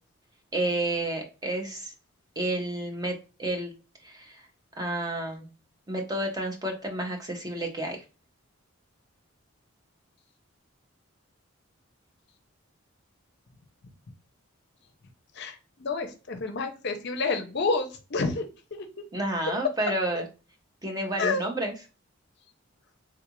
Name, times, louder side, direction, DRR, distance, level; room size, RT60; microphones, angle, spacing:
voice 1, 0.5-1.9 2.4-3.7 4.0-4.4 4.8-5.5 5.9-8.0 19.1-20.2 20.8-21.7, right 1 dB, 20° right, 2 dB, 0.6 m, -30 dB
voice 2, 15.4-18.9 21.2-21.4, left 3 dB, 50° left, 6 dB, 0.5 m, -29 dB
3.5 x 2.4 x 2.9 m, 0.32 s
head